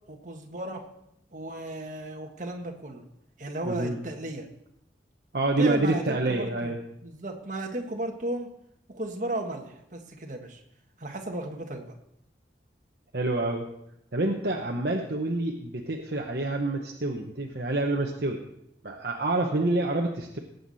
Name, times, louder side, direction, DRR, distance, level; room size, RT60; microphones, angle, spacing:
voice 1, 0.1-0.8 1.3-3.0 3.4-4.5 5.6-6.7 7.0-8.5 8.9-10.6 11.0-11.9, right 1 dB, 45° right, 3 dB, 1.5 m, -35 dB
voice 2, 3.6-4.0 5.3-6.8 13.1-13.7 14.1-18.4 18.8-20.4, right 2 dB, 60° right, 1 dB, 1.0 m, -27 dB
18.0 x 8.1 x 4.1 m, 0.76 s
head